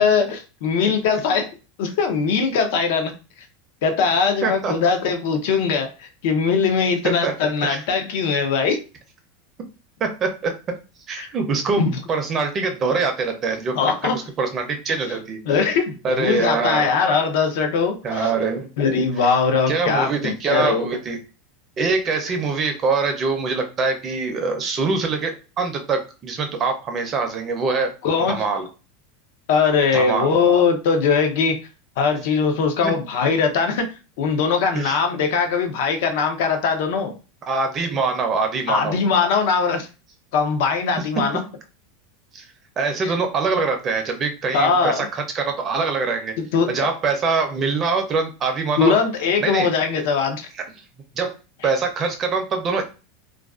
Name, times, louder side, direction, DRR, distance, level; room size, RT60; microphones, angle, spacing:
voice 1, 0.0-1.5 1.8-3.1 3.8-8.8 11.2-11.3 11.8-12.0 13.7-14.2 15.5-18.3 18.8-20.9 28.0-28.4 29.5-31.6 32.0-33.9 34.2-37.2 38.7-39.9 40.3-41.4 44.5-45.1 46.4-46.7 48.8-50.5, left 5 dB, 65° left, 6 dB, 0.6 m, -20 dB
voice 2, 4.4-4.7 7.0-7.3 7.7-7.8 10.0-10.5 11.1-11.8 12.1-15.4 16.0-16.9 18.0-18.7 19.2-19.3 19.7-21.2 21.8-27.9 28.3-28.7 29.9-30.3 32.8-32.9 34.7-35.0 37.5-39.0 41.2-41.5 42.3-42.5 42.8-46.3 46.7-48.9 49.4-49.7 51.2-51.3 51.6-52.8, right 4 dB, 25° right, 5 dB, 0.5 m, -24 dB
2.4 x 2.3 x 2.3 m, 0.32 s
supercardioid pair, 150°, 0 cm